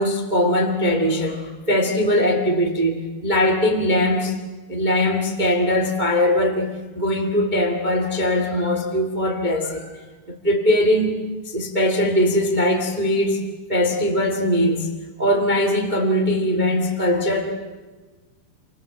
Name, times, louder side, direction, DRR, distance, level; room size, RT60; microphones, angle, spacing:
voice 1, 0.0-4.3 4.7-10.0 10.3-13.4 13.7-14.9 15.2-17.5, left 1 dB, 60° right, 3 dB, 0.4 m, -21 dB
28.5 x 26.5 x 7.4 m, 1.3 s
omnidirectional pair, 5.5 m